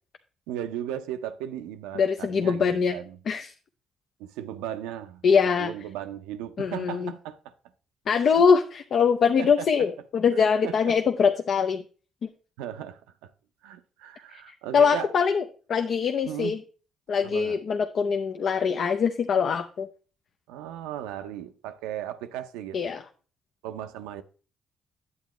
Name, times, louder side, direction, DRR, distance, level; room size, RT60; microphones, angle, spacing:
voice 1, 0.5-3.2 4.2-5.2 5.6-7.5 8.4-8.5 9.4-9.7 10.4-10.8 12.6-13.3 13.6-15.1 16.3-16.6 17.2-17.6 20.5-22.8 23.6-24.2, right 11 dB, 90° right, 0.5 m, -36 dB
voice 2, 2.0-3.0 3.3-3.5 5.2-5.7 6.6-7.1 8.1-11.8 12.2-12.3 14.3-14.4 14.7-15.4 15.7-16.6 17.1-19.9 22.7-23.0, left 6 dB, 60° left, 0.6 m, -23 dB
9.4 x 8.2 x 3.0 m
supercardioid pair, 60°, 0 cm